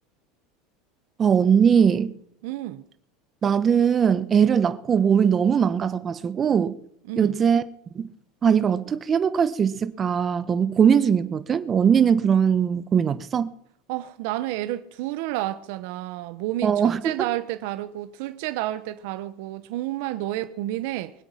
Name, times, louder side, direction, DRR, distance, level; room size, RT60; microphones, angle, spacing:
voice 1, 1.2-2.1 3.4-6.8 7.2-7.6 7.9-8.1 8.4-13.5 16.6-17.3, right 7 dB, 30° right, 1.1 m, -20 dB
voice 2, 2.4-2.8 7.1-7.3 13.9-21.1, right 15 dB, 70° right, 1.1 m, -30 dB
23.5 x 8.2 x 5.9 m
supercardioid pair, 125°, 0 cm